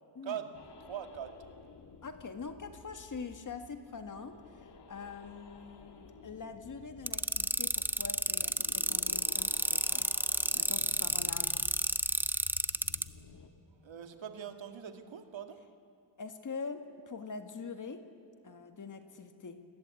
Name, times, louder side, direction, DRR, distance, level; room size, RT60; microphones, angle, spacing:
voice 1, 0.2-0.5 0.8-1.4 13.8-15.7, right 9 dB, 80° right, 6 dB, 2.2 m, -42 dB
sound 1, 0.5-13.5, left 5 dB, 60° left, 2.0 m, -53 dB
voice 2, 2.0-10.1 10.5-11.6 16.2-18.0 18.4-19.6, left 4 dB, 40° left, 7 dB, 1.8 m, -44 dB
sound 2, 7.1-13.0, right 1 dB, 5° right, 0.5 m, -30 dB
29.0 x 21.0 x 8.5 m, 2.5 s
wide cardioid pair, 165°, 45 cm